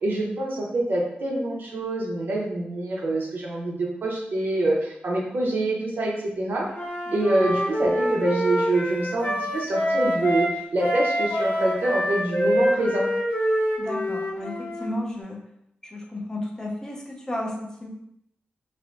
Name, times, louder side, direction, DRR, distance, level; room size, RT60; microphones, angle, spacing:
voice 1, 0.0-6.7 7.1-10.5 10.7-13.1, right 1 dB, 65° right, -2 dB, 0.7 m, -25 dB
Wind instrument woodwind instrument, 6.7-10.5 10.8-14.9, equal, 55° left, 0.7 m, -26 dB
voice 2, 13.8-15.4 15.9-17.9, left 1 dB, 15° left, -1 dB, 0.5 m, -33 dB
3.2 x 2.1 x 2.5 m, 0.78 s
wide cardioid pair, 135°, 4 cm